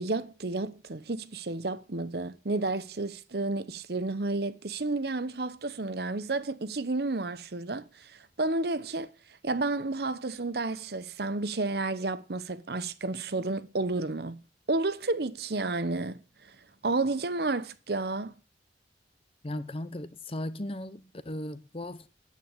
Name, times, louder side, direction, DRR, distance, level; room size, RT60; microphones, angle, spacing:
voice 1, 0.0-9.1 9.4-14.4 14.7-16.5 16.8-18.3, right 2 dB, 60° right, 0.9 m, -31 dB
voice 2, 19.4-22.1, left 1 dB, 30° left, 0.8 m, -37 dB
9.4 x 9.3 x 8.0 m
head